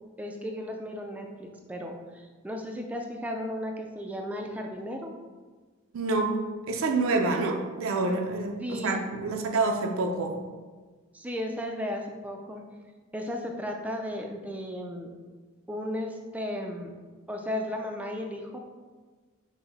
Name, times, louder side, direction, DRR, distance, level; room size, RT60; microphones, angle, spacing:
voice 1, 0.2-5.1 8.6-9.0 11.1-12.6 13.1-15.1 15.7-16.9 17.3-18.6, left 1 dB, 5° right, 2 dB, 0.3 m, -35 dB
voice 2, 5.9-6.3 6.7-10.4, right 3 dB, 75° right, 3 dB, 0.4 m, -27 dB
5.8 x 2.1 x 4.0 m, 1.4 s
head